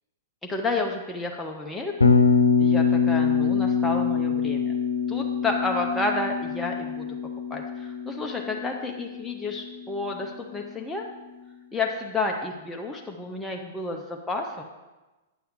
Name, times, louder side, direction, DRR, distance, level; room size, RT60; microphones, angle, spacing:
voice 1, 0.4-2.1 2.6-4.7 5.1-7.1 7.5-11.1 11.7-14.6, left 3 dB, 5° left, 0 dB, 0.7 m, -30 dB
Bass guitar, 2.0-10.1, left 5 dB, 80° left, 0.7 m, -24 dB
8.8 x 7.0 x 3.6 m, 1.1 s
figure-of-eight pair, 105°, 0 cm